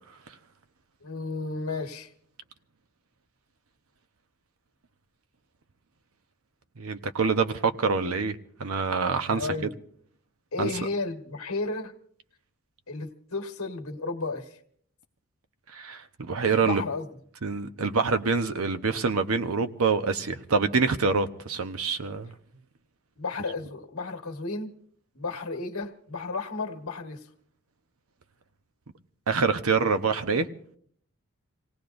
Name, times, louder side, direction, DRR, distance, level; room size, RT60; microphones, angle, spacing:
voice 1, 1.0-2.1 9.3-9.7 10.5-11.9 12.9-14.6 16.6-17.1 23.2-24.7 25.1-27.3, left 3 dB, 65° left, 1.6 m, -33 dB
voice 2, 6.8-9.5 10.6-10.7 15.7-16.8 17.4-22.3 29.3-30.5, right 4 dB, 75° right, 0.9 m, -26 dB
27.5 x 17.5 x 2.6 m
head